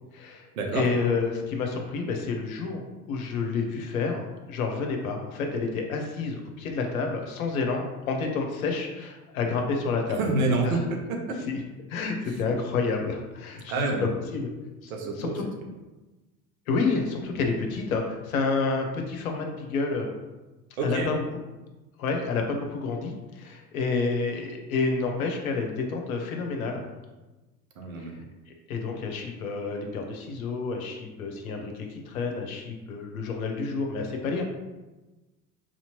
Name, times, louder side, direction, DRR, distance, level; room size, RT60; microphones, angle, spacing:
voice 1, 0.1-2.8 3.1-10.2 10.6-10.8 11.5-11.6 11.9-13.7 14.3-14.5 14.8-14.9 15.2-15.4 16.7-20.1 20.8-21.4 22.0-26.8 28.0-34.4, left 4 dB, 65° left, 2 dB, 0.8 m, -29 dB
voice 2, 10.2-10.8 11.1-11.4 13.7-14.1 14.9-15.4 20.8-21.1 27.8-28.1, right 3 dB, 60° right, 2 dB, 0.9 m, -27 dB
4.5 x 2.8 x 2.9 m, 1.1 s
figure-of-eight pair, 70°, 46 cm